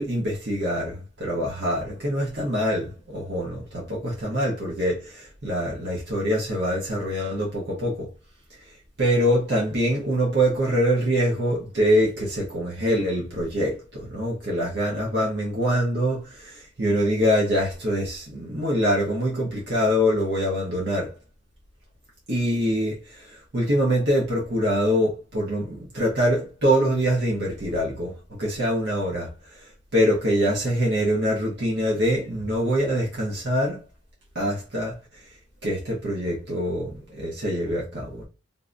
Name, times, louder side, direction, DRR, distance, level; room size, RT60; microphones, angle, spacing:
voice 1, 0.0-8.1 9.0-21.1 22.3-29.3 29.9-33.8 34.3-35.0 35.6-38.3, equal, 65° right, 1.0 m, -24 dB
3.7 x 2.8 x 2.5 m
head